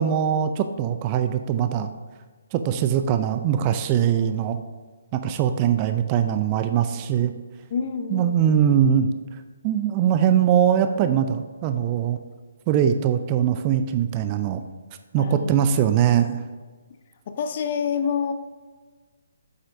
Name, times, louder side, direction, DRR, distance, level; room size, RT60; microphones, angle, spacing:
voice 1, 0.0-1.9 2.5-4.6 5.1-7.3 8.1-9.1 9.6-12.2 12.7-14.6 15.1-16.4, right 9 dB, 30° right, 9 dB, 0.4 m, -21 dB
voice 2, 7.7-8.6 15.2-15.5 17.3-18.3, left 6 dB, 40° left, 8 dB, 0.7 m, -27 dB
8.2 x 7.7 x 2.6 m, 1.4 s
figure-of-eight pair, 135°, 0 cm